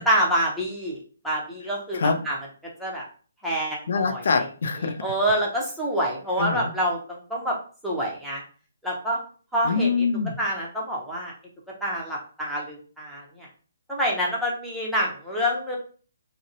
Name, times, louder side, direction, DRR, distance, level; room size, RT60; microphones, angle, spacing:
voice 1, 0.1-1.0 1.2-2.4 2.8-3.0 3.4-4.2 5.0-7.5 7.8-8.4 8.8-9.2 9.5-9.9 10.4-11.3 11.8-13.2 13.9-15.8, equal, ahead, -5 dB, 0.7 m, -26 dB
voice 2, 1.9-2.2 3.9-5.0 6.4-6.7 9.6-10.4, left 4 dB, 65° left, 8 dB, 0.4 m, -24 dB
2.5 x 2.0 x 2.6 m, 0.40 s
hypercardioid pair, 145°, 0 cm